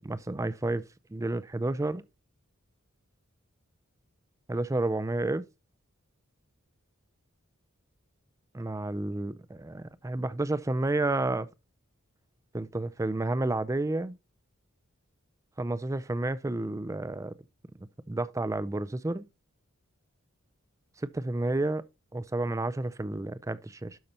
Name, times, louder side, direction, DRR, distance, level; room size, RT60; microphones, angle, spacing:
voice 1, 0.0-0.8 1.1-2.0 4.5-5.5 8.5-11.5 12.5-14.2 15.6-17.3 17.8-19.3 21.0-21.8 22.1-24.0, right 2 dB, 15° right, 0.4 m, -30 dB
12.0 x 5.5 x 2.8 m
head